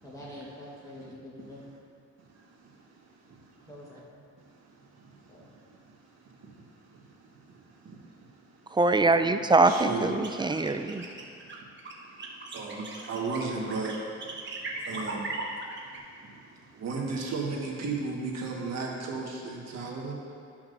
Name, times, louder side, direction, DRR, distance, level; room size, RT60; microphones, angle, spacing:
voice 1, 0.0-1.6 3.7-4.2 5.3-5.4, left 1 dB, 10° left, -5 dB, 1.4 m, -45 dB
voice 2, 2.2-3.7 4.4-8.8 9.7-10.2 10.6-20.1, right 4 dB, 60° right, -2 dB, 1.6 m, -37 dB
voice 3, 8.7-11.1, right 3 dB, 15° right, 9 dB, 0.3 m, -23 dB
sound 1, 10.1-16.0, right 3 dB, 40° right, 1.2 m, -38 dB
13.5 x 5.8 x 2.6 m, 2.4 s
cardioid pair, 90°, 30 cm